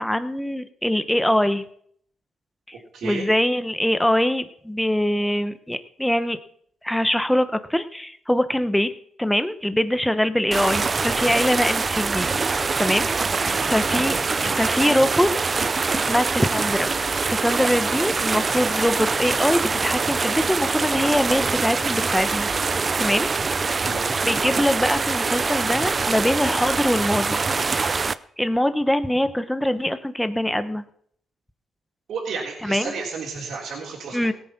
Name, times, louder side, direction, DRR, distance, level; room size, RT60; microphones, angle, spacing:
voice 1, 0.0-1.6 2.7-2.8 3.0-6.4 6.8-8.9 9.2-12.3 12.8-13.1 13.4-15.3 15.9-16.9 17.3-22.5 23.0-23.3 24.2-27.4 27.7-27.9 28.4-30.8 32.6-32.9 34.1-34.3, left 1 dB, 5° left, 11 dB, 1.1 m, -23 dB
voice 2, 2.9-3.3 13.1-13.7 23.7-24.1 32.1-34.2, right 4 dB, 70° right, -3 dB, 3.5 m, -32 dB
sound 1, 10.5-28.1, right 4 dB, 35° right, 0.6 m, -24 dB
18.0 x 8.5 x 6.0 m, 0.65 s
cardioid pair, 90°, 0 cm